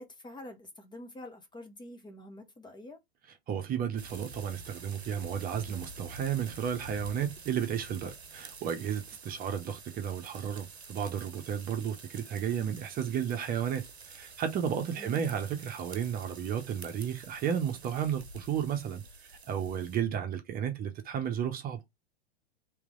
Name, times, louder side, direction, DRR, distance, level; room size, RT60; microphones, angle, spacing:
voice 1, 0.0-3.0 15.0-15.2, left 1 dB, 15° left, 0.9 m, -47 dB
voice 2, 3.5-21.8, right 8 dB, 30° right, 0.9 m, -33 dB
sound 1, 4.0-20.0, right 4 dB, 90° right, 0.8 m, -48 dB
3.2 x 3.1 x 3.8 m
figure-of-eight pair, 100°, 31 cm